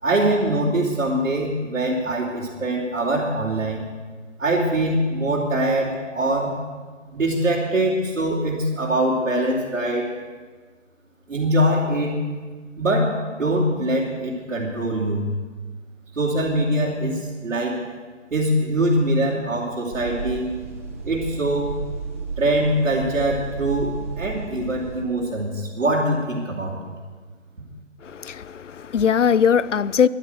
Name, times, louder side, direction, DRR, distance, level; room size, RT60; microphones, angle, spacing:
voice 1, 0.0-3.8 4.4-6.5 7.1-10.1 11.3-12.1 12.8-15.3 16.1-17.8 18.3-20.5 21.0-21.7 22.4-26.8, right 1 dB, 75° right, 3.8 m, -23 dB
sound 1, 19.9-25.0, right 4 dB, 10° right, 0.8 m, -33 dB
voice 2, 28.0-30.1, left 7 dB, 75° left, 0.7 m, -20 dB
12.0 x 11.5 x 9.6 m
figure-of-eight pair, 160°, 37 cm